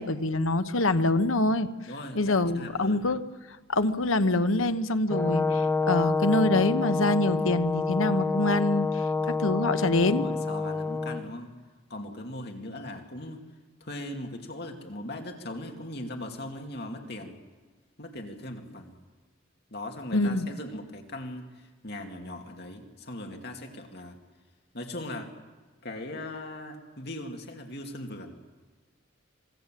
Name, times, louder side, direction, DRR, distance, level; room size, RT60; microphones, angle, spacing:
voice 1, 0.0-1.7 2.1-3.2 3.7-10.3 20.1-20.5, left 2 dB, 75° left, 10 dB, 1.2 m, -25 dB
voice 2, 1.9-3.1 10.1-11.5 11.9-13.4 13.8-17.4 18.0-19.0 19.7-24.2 24.7-25.3 25.8-28.4, left 1 dB, 50° left, 3 dB, 2.5 m, -39 dB
Brass instrument, 5.1-11.2, left 4 dB, 10° left, 1.5 m, -28 dB
26.0 x 20.5 x 7.6 m, 1.4 s
head